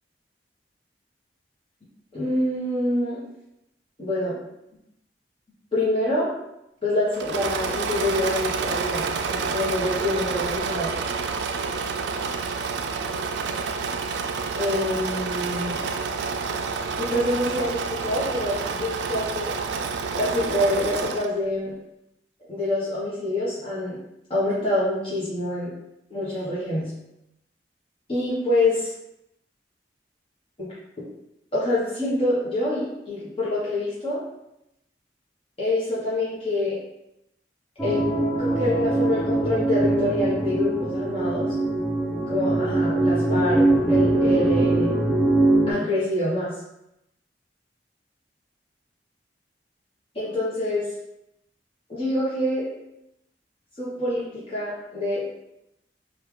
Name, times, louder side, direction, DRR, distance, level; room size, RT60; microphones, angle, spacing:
voice 1, 2.1-3.2 4.0-4.4 5.7-6.3 6.8-10.9 14.6-15.8 17.0-19.5 20.1-21.7 22.5-24.0 24.3-25.7 26.1-26.9 28.1-28.9 30.6-30.7 31.0-31.1 31.5-34.2 35.6-36.8 37.8-41.5 42.3-44.9 45.7-46.5 50.1-50.9 51.9-52.7 53.8-55.4, left 1 dB, 30° left, -9 dB, 0.8 m, -26 dB
Engine / Mechanisms, 7.1-21.4, right 5 dB, 75° right, 0.3 m, -29 dB
sound 1, 37.8-45.7, right 2 dB, 5° left, 0.6 m, -22 dB
3.6 x 2.3 x 3.1 m, 0.87 s
head